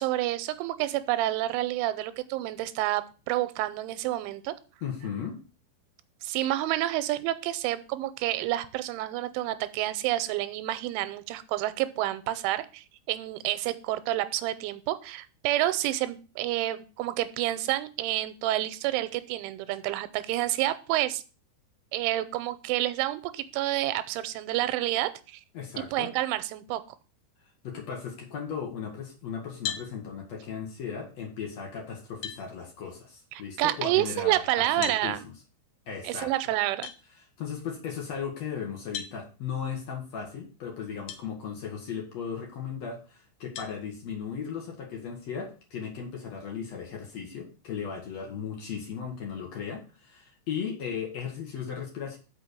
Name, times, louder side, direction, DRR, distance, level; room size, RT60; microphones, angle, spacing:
voice 1, 0.0-4.5 6.2-21.2 21.9-25.4 25.8-26.8 33.3-35.2 36.0-36.9, right 15 dB, 90° right, 13 dB, 3.1 m, -29 dB
voice 2, 4.8-5.4 25.5-26.1 27.6-35.3 35.9-36.3 37.4-52.2, left 7 dB, 60° left, 1 dB, 1.8 m, -36 dB
sound 1, 29.6-29.9 31.6-31.7 32.2-32.4 34.8-35.0 36.8-37.0 38.9-39.2 41.1-41.2 41.9-42.0 43.6-43.8, left 9 dB, 75° left, 3.4 m, -35 dB
6.4 x 6.0 x 6.7 m, 0.35 s
omnidirectional pair, 5.4 m